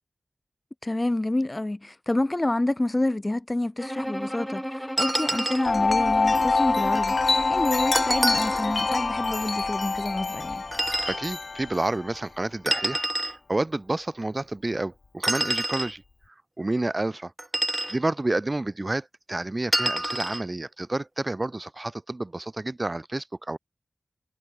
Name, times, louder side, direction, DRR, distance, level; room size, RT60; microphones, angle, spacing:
voice 1, 0.8-10.6, left 1 dB, 30° left, 1.9 m, -28 dB
Bowed string instrument, 3.8-9.2, equal, ahead, 1.5 m, -34 dB
sound 1, 5.0-5.7 8.0-8.7 10.7-11.2 12.7-13.4 15.2-15.9 17.4-18.0 19.7-20.4, right 1 dB, 20° right, 0.9 m, -27 dB
Wind chime, 5.6-12.2, left 3 dB, 65° left, 1.7 m, -26 dB
voice 2, 11.1-13.0 13.5-16.0 16.6-17.3 17.9-23.6, right 2 dB, 35° right, 2.4 m, -29 dB
cardioid pair, 45°, 0 cm